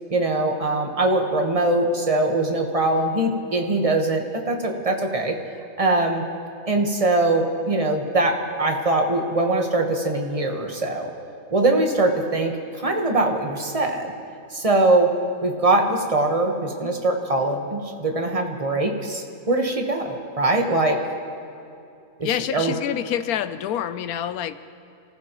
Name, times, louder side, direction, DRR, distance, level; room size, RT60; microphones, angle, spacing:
voice 1, 0.1-5.3 5.8-6.2 6.7-11.1 11.5-14.1 14.5-15.1 15.4-21.0 22.2-22.7, right 2 dB, 25° right, 2 dB, 1.3 m, -22 dB
voice 2, 22.2-24.6, left 10 dB, 90° left, 13 dB, 1.1 m, -27 dB
27.0 x 15.0 x 3.1 m, 2.7 s
omnidirectional pair, 1.5 m